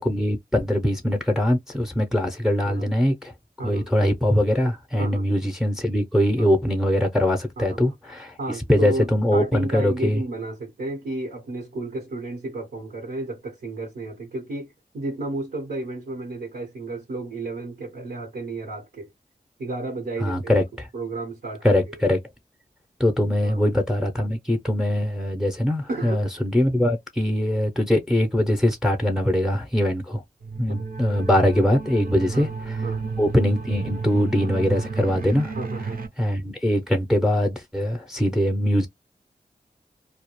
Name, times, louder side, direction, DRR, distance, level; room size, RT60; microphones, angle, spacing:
voice 1, 0.0-3.3 3.6-8.4 8.7-10.2 20.2-20.6 21.6-22.2 23.0-30.2 30.6-32.8 33.2-35.5 36.2-38.9, left 1 dB, 5° right, 0.5 m, -22 dB
voice 2, 7.6-7.9 8.4-19.1 19.6-20.6 20.9-22.0 23.4-23.6 25.9-26.2 32.3-32.5 32.8-33.0 35.5-36.0, right 2 dB, 90° right, 0.9 m, -32 dB
sound 1, 30.4-36.1, right 4 dB, 60° right, 0.6 m, -31 dB
2.2 x 2.1 x 2.9 m
cardioid pair, 45°, 16 cm